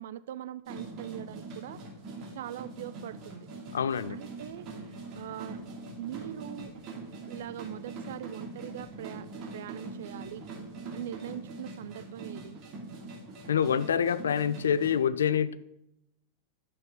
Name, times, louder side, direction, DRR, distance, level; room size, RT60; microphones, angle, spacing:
voice 1, 0.0-1.8 2.3-3.5 4.1-4.7 5.2-5.6 6.0-6.7 7.3-10.5 10.9-12.6, right 11 dB, 55° right, 0.5 m, -41 dB
sound 1, 0.7-15.0, right 3 dB, 40° right, 2.6 m, -43 dB
voice 2, 3.7-4.2 13.5-15.6, left 8 dB, 65° left, 0.5 m, -26 dB
11.0 x 7.2 x 5.7 m
figure-of-eight pair, 90°, 0 cm